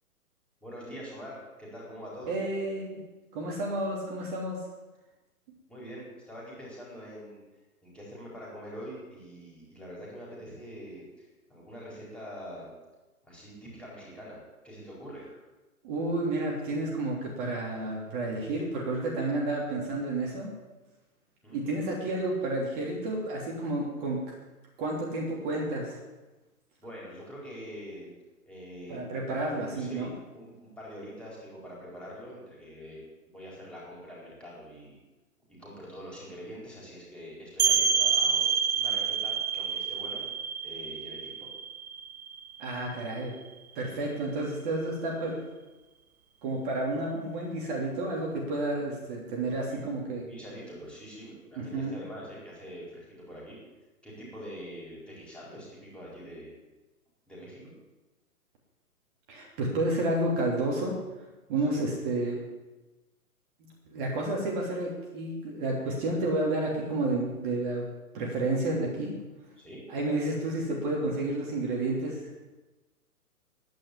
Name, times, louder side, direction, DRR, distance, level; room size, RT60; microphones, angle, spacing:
voice 1, 0.6-2.3 5.7-7.4 7.8-12.7 13.2-14.4 14.6-15.2 21.4-21.6 26.8-28.2 28.5-29.0 29.8-33.0 33.3-35.0 35.5-38.4 38.7-40.2 40.6-41.5 49.6-49.9 50.2-53.6 54.0-56.5 57.3-57.7 61.7-61.9 69.6-69.8, equal, ahead, -6 dB, 4.4 m, -44 dB
voice 2, 2.2-3.0 3.3-4.6 15.8-20.5 21.5-24.2 24.8-26.0 28.9-30.1 42.6-43.3 43.7-45.4 46.4-50.3 51.6-52.0 59.3-60.9 61.5-62.4 63.9-67.9 68.1-69.1 69.9-72.3, right 2 dB, 35° right, -2 dB, 3.2 m, -30 dB
sound 1, 37.6-43.1, right 6 dB, 65° right, 1.5 m, -28 dB
10.5 x 9.4 x 9.9 m, 1.1 s
figure-of-eight pair, 125°, 45 cm